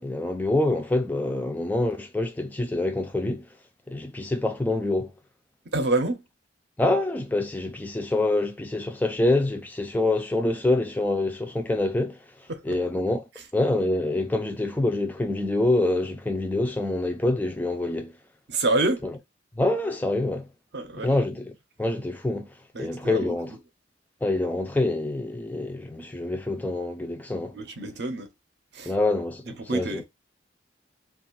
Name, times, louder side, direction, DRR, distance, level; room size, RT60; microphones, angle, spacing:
voice 1, 0.0-3.5 3.9-5.1 6.8-12.2 12.7-13.2 13.5-18.1 19.6-20.5 21.0-21.5 21.8-22.5 22.8-23.5 24.2-27.6 28.9-29.5 29.7-30.0, left 2 dB, 10° left, 0.3 m, -26 dB
voice 2, 5.6-6.2 12.5-12.8 18.5-19.1 20.7-21.1 22.7-23.4 27.5-28.3 28.7-28.9 29.5-30.0, right 2 dB, 60° right, 0.6 m, -27 dB
2.4 x 2.4 x 3.8 m
head